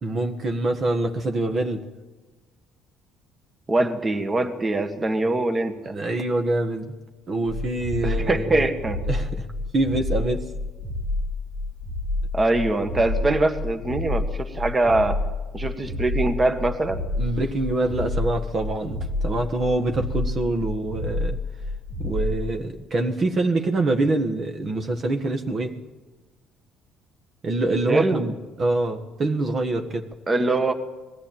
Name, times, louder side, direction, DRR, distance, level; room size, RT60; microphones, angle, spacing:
voice 1, 0.0-1.8 5.8-6.9 7.3-8.7 9.1-9.5 9.7-10.5 17.2-21.4 22.0-25.8 27.4-30.1, right 2 dB, 40° right, 5 dB, 1.6 m, -25 dB
voice 2, 3.7-6.0 8.0-9.0 12.3-15.2 15.5-17.0 27.9-28.2 30.3-30.7, right 2 dB, 20° right, 7 dB, 1.7 m, -23 dB
sound 1, 7.5-22.4, left 2 dB, 85° right, 3.1 m, -29 dB
20.5 x 15.0 x 8.9 m, 1.2 s
cardioid pair, 110°, 0 cm